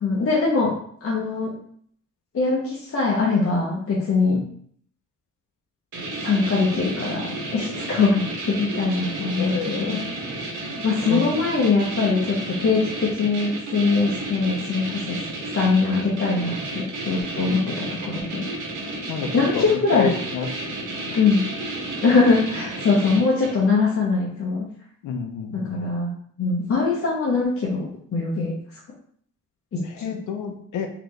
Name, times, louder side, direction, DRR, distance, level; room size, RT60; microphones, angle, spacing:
voice 1, 0.0-0.7 1.0-1.5 2.3-4.4 6.2-10.0 10.8-12.4 12.6-15.2 15.5-18.5 19.3-20.1 21.2-21.4 22.0-24.6 25.5-26.1 26.4-28.5 29.7-30.1, left 4 dB, 45° left, -3 dB, 0.9 m, -22 dB
sound 1, 5.9-23.7, right 2 dB, 75° right, 1.3 m, -32 dB
voice 2, 9.4-10.0 11.1-11.2 17.4-17.8 19.1-20.5 21.1-21.2 25.0-25.8 29.8-30.9, left 7 dB, 80° left, 5 dB, 0.6 m, -29 dB
3.9 x 2.9 x 3.2 m, 0.62 s
cardioid pair, 90°, 31 cm